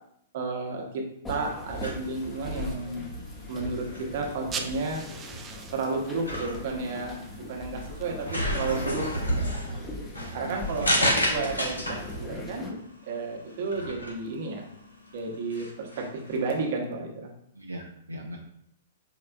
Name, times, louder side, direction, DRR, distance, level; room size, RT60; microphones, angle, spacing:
voice 1, 0.3-3.1 3.5-5.0 5.7-9.1 9.3-9.5 10.3-10.9 11.3-12.8 13.1-14.6 15.1-17.3, right 3 dB, 50° right, 1 dB, 0.9 m, -32 dB
sound 1, 1.2-12.7, left 1 dB, 15° left, 0.7 m, -39 dB
sound 2, 1.7-16.7, equal, 85° left, 1.2 m, -33 dB
sound 3, 4.3-9.5, right 5 dB, 20° right, 0.4 m, -43 dB
voice 2, 10.4-10.9 17.5-18.4, equal, 85° right, 1 dB, 0.4 m, -39 dB
4.8 x 3.3 x 2.3 m, 0.71 s
figure-of-eight pair, 110°, 0 cm